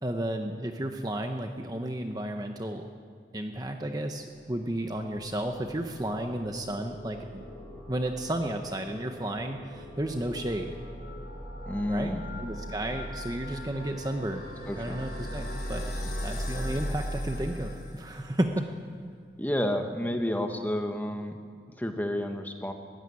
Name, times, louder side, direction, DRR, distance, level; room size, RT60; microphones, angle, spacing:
voice 1, 0.0-2.8 3.3-7.4 7.9-10.7 11.9-12.1 12.4-14.4 14.8-15.8 16.2-18.7, right 1 dB, 20° right, 4 dB, 1.0 m, -32 dB
sound 1, 4.3-18.5, equal, 55° left, 6.1 m, -39 dB
voice 2, 11.7-12.3 14.7-15.0 19.4-21.4 21.8-22.7, left 1 dB, 10° left, 4 dB, 1.6 m, -30 dB
21.0 x 16.0 x 9.7 m, 2.2 s
head